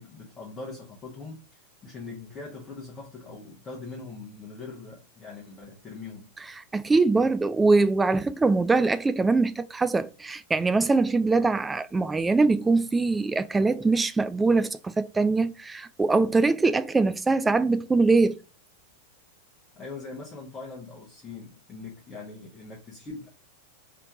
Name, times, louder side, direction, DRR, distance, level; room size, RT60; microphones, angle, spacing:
voice 1, 0.0-6.3 19.8-23.3, left 3 dB, 20° left, 1.0 m, -41 dB
voice 2, 6.7-18.4, right 3 dB, 10° right, 0.3 m, -23 dB
3.4 x 2.9 x 3.5 m
figure-of-eight pair, 90°, 0 cm